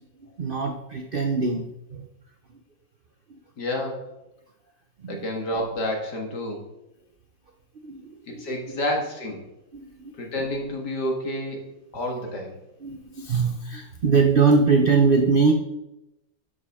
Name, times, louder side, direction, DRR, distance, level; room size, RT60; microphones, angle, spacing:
voice 1, 0.4-1.7 1.9-2.1 5.0-5.2 7.8-8.0 8.3-8.5 9.7-10.1 12.8-15.5, right 4 dB, 85° right, 3 dB, 0.4 m, -22 dB
voice 2, 3.6-4.1 5.1-6.6 8.3-9.4 10.2-11.6 11.9-12.5, left 1 dB, 60° left, 1 dB, 2.3 m, -29 dB
12.0 x 7.1 x 3.5 m, 0.92 s
omnidirectional pair, 2.1 m